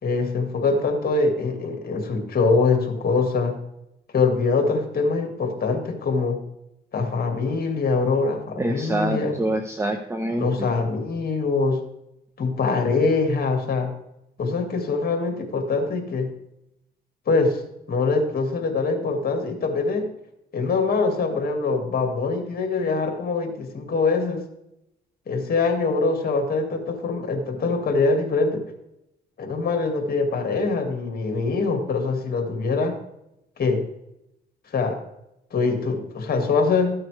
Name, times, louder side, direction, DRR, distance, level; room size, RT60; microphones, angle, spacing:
voice 1, 0.0-3.6 4.1-6.4 6.9-9.4 10.4-11.8 12.4-13.9 14.4-16.3 17.3-17.6 17.9-20.1 20.5-24.4 25.3-28.6 29.4-33.0 33.6-33.8 34.7-35.0 35.5-36.9, left 4 dB, 50° left, 4 dB, 2.2 m, -23 dB
voice 2, 8.6-10.7, right 1 dB, 15° right, 5 dB, 1.0 m, -26 dB
14.0 x 8.9 x 3.4 m, 0.85 s
cardioid pair, 90°, 20 cm